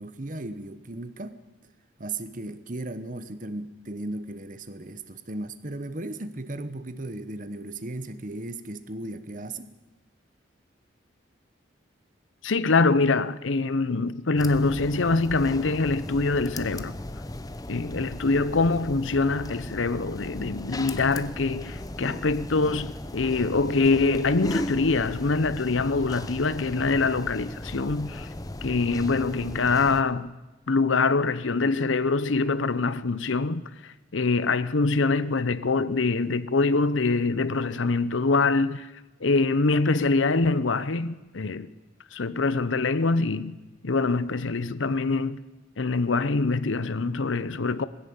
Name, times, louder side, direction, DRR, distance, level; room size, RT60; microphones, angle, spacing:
voice 1, 0.0-1.4 2.0-9.7, right 2 dB, 40° right, 1.1 m, -36 dB
voice 2, 12.4-17.0 17.7-28.3 28.6-30.3 30.7-38.9 39.2-41.7 42.1-43.6 43.8-45.4 45.8-47.8, left 3 dB, 75° left, 0.8 m, -24 dB
sound 1, 14.4-30.0, left 1 dB, 20° left, 0.8 m, -37 dB
20.5 x 16.0 x 8.8 m
head